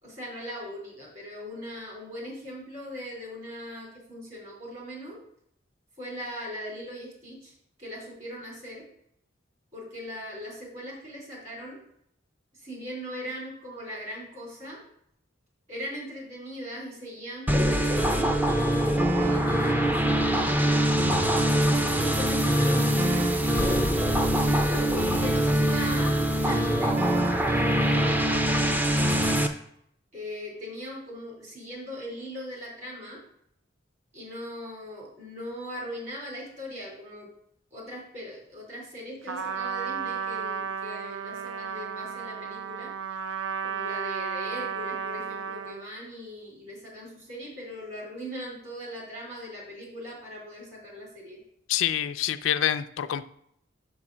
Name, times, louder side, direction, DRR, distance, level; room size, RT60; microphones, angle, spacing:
voice 1, 0.0-5.2 6.0-7.5 7.8-8.8 9.7-11.8 12.6-14.8 15.7-18.6 19.0-20.9 21.9-23.7 24.7-26.9 27.8-28.7 30.1-33.2 34.1-37.3 37.7-42.9 43.6-51.4, equal, 40° right, -2 dB, 2.9 m, -39 dB
sound 1, 17.5-29.5, equal, 10° right, 0.4 m, -23 dB
Trumpet, 39.3-45.9, right 7 dB, 80° right, 0.6 m, -33 dB
voice 2, 51.7-53.2, left 11 dB, 80° left, 11 dB, 0.4 m, -26 dB
5.4 x 4.5 x 6.0 m, 0.71 s
head